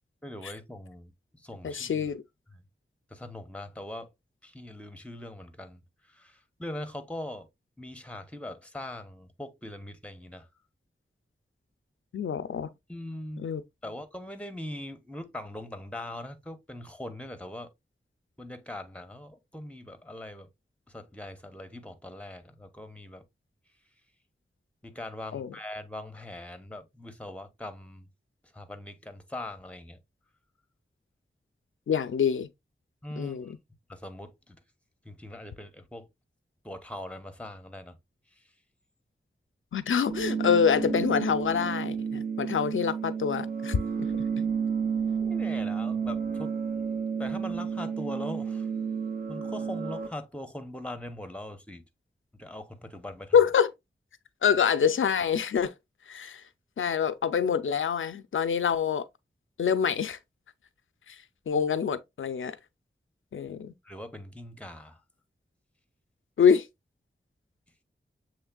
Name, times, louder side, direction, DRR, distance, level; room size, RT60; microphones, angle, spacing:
voice 1, 0.2-2.1 2.5-2.6 3.1-4.1 4.4-7.5 7.8-10.5 12.9-13.5 13.8-17.7 18.4-20.5 20.9-23.2 24.8-28.1 28.5-30.0 33.0-33.5 33.9-34.6 35.0-36.1 36.6-38.0 38.3-38.5 45.2-46.6 47.2-48.7 49.3-51.8 52.4-53.4 63.8-65.0, left 1 dB, 5° left, 0.8 m, -41 dB
voice 2, 1.6-2.2 12.1-12.7 13.4-13.6 25.3-25.5 31.9-32.5 33.2-33.5 39.7-44.1 53.3-53.7 54.4-55.7 56.1-56.4 56.8-59.1 59.6-60.2 61.1-61.2 61.5-62.6 63.3-63.7 66.4-66.7, left 7 dB, 90° left, 0.4 m, -26 dB
sound 1, 40.1-50.1, right 6 dB, 50° right, 1.0 m, -31 dB
7.0 x 3.2 x 2.2 m
wide cardioid pair, 65°, 20 cm